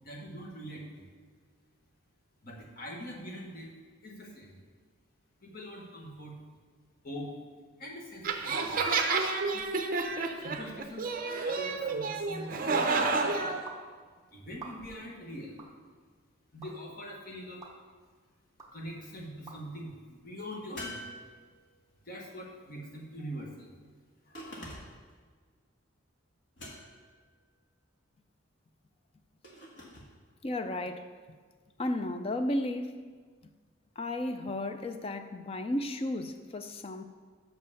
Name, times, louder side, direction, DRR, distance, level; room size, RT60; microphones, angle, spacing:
voice 1, 0.0-1.1 2.4-4.6 5.4-6.4 7.0-7.4 7.8-8.9 10.3-11.1 11.4-13.1 14.3-15.7 16.5-17.6 18.7-21.1 22.0-23.7 24.2-24.6, equal, 45° left, -1 dB, 1.4 m, -43 dB
sound 1, 8.2-13.6, right 4 dB, 45° right, 0.6 m, -30 dB
sound 2, 13.7-13.8 14.5-15.0 15.6-15.7 16.6-16.7 17.6-17.7 18.6-18.7 19.5-19.6, right 4 dB, 15° right, 0.9 m, -46 dB
sound 3, 20.8-21.9 24.3-25.1 26.6-27.2 29.4-30.1, left 1 dB, 60° left, 1.7 m, -45 dB
voice 2, 30.4-31.1 31.8-33.0 34.0-37.0, left 1 dB, 30° left, 9 dB, 0.4 m, -33 dB
6.1 x 5.5 x 6.6 m, 1.5 s
head